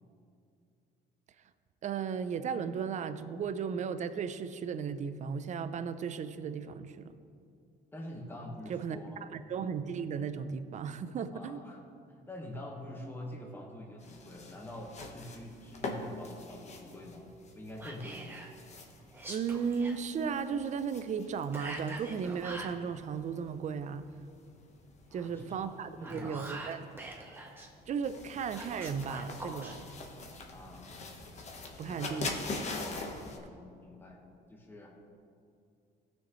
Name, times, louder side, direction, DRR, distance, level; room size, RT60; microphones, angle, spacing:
voice 1, 1.8-7.1 8.7-11.6 19.3-24.1 25.1-27.1 27.9-29.9 31.8-32.4, right 6 dB, 45° right, 11 dB, 0.6 m, -35 dB
voice 2, 7.9-9.2 11.3-11.8 12.1-18.4 25.1-26.4 30.5-31.0 31.8-32.4 33.2-34.2 34.5-34.9, left 1 dB, 15° left, -1 dB, 1.5 m, -46 dB
sound 1, 14.0-33.4, left 3 dB, 40° left, 1.3 m, -45 dB
Whispering, 17.8-18.5 19.1-20.0 21.5-22.8 25.8-27.7 28.5-29.8, right 2 dB, 15° right, 1.4 m, -44 dB
16.0 x 6.4 x 3.2 m, 2.5 s
cardioid pair, 110°, 17 cm